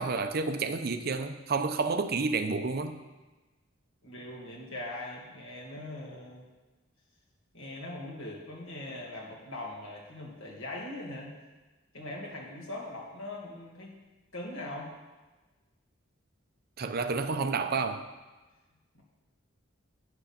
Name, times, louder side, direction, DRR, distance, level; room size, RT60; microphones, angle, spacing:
voice 1, 0.0-3.0 16.8-18.1, right 4 dB, 50° right, 0.6 m, -30 dB
voice 2, 4.0-6.4 7.5-11.3 11.9-13.9 14.3-14.9 18.9-19.0, left 1 dB, 70° left, 2.2 m, -41 dB
9.8 x 6.2 x 5.8 m
head